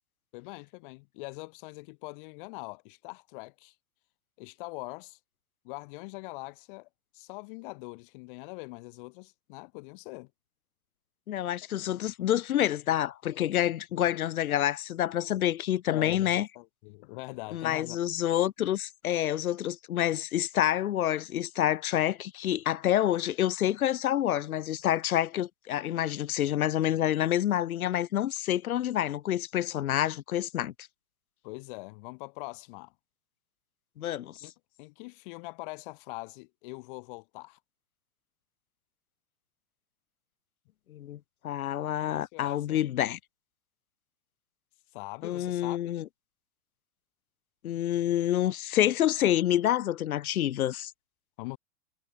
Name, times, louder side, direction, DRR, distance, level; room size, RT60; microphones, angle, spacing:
voice 1, 0.3-3.8 4.4-5.2 5.6-6.9 7.1-10.3 15.9-18.0 31.4-32.9 34.4-34.5 34.8-37.6 42.0-42.8 44.9-45.8 51.4-51.6, left 27 dB, 35° left, 7.1 m, -42 dB
voice 2, 11.3-16.5 17.5-30.7 34.0-34.3 40.9-41.2 41.4-43.2 45.2-46.0 47.6-50.9, left 12 dB, 90° left, 2.6 m, -28 dB
supercardioid pair, 175°, 42 cm